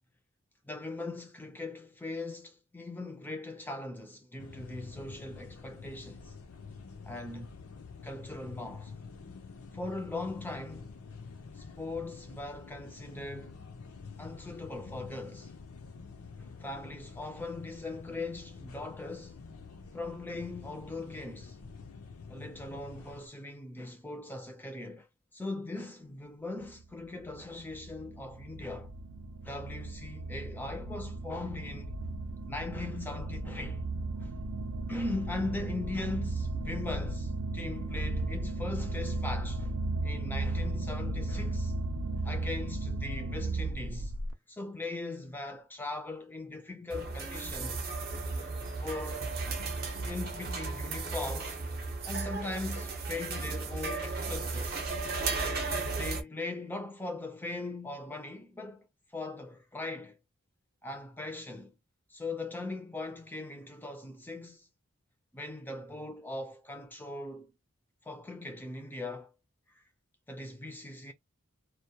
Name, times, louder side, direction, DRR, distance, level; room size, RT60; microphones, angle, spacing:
voice 1, 0.6-6.3 7.0-7.6 8.0-8.9 9.7-11.0 11.6-13.6 14.2-15.5 16.4-19.4 19.9-21.6 22.3-25.1 25.3-28.9 29.4-31.9 32.5-33.9 34.2-34.3 34.9-39.7 40.0-41.7 42.2-44.2 44.5-47.9 48.8-49.3 50.1-51.6 52.0-54.9 56.0-58.9 59.1-60.2 60.8-61.7 62.1-64.7 65.3-67.5 68.1-69.3 70.3-71.1, left 2 dB, 10° left, 0.4 m, -40 dB
sound 1, 4.4-23.3, left 4 dB, 90° left, 0.6 m, -48 dB
sound 2, 26.8-44.3, right 2 dB, 85° right, 0.5 m, -35 dB
sound 3, 46.9-56.2, right 3 dB, 45° right, 0.6 m, -35 dB
2.2 x 2.2 x 2.7 m
head